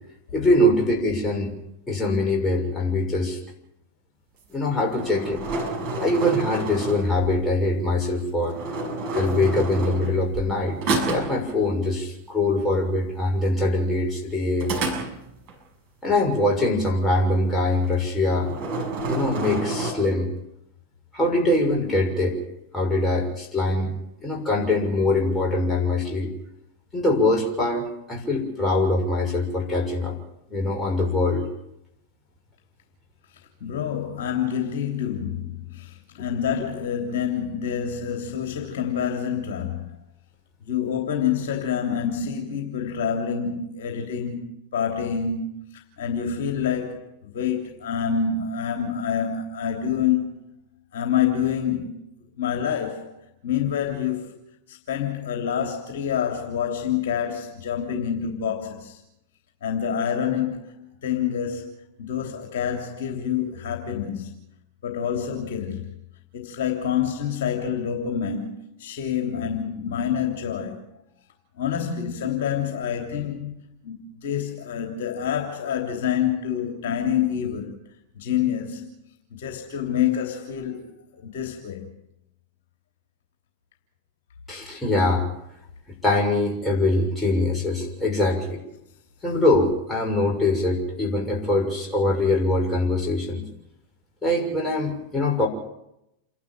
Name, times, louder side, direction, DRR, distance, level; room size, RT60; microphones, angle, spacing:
voice 1, 0.3-1.5 1.9-3.4 4.5-5.4 6.0-8.6 9.1-10.8 11.0-14.8 16.0-18.5 19.1-20.3 21.1-22.4 22.7-23.9 24.2-26.3 26.9-30.2 30.5-31.4 36.6-36.7 84.5-85.3 86.0-88.6 89.2-93.4 94.2-95.5, left 2 dB, 10° left, 6.4 m, -23 dB
sound 1, 4.6-7.4 8.4-10.5 10.8-11.4 14.6-15.5 17.8-18.1 18.4-19.9, right 2 dB, 40° right, 6.8 m, -29 dB
voice 2, 33.6-40.0 40.6-44.5 44.7-50.3 50.9-52.0 52.4-54.4 54.7-59.0 59.6-64.3 64.8-65.9 66.3-70.8 71.6-77.8 78.1-78.9 79.3-81.9, left 8 dB, 55° left, 3.2 m, -27 dB
28.5 x 12.0 x 8.9 m
figure-of-eight pair, 90°, 0 cm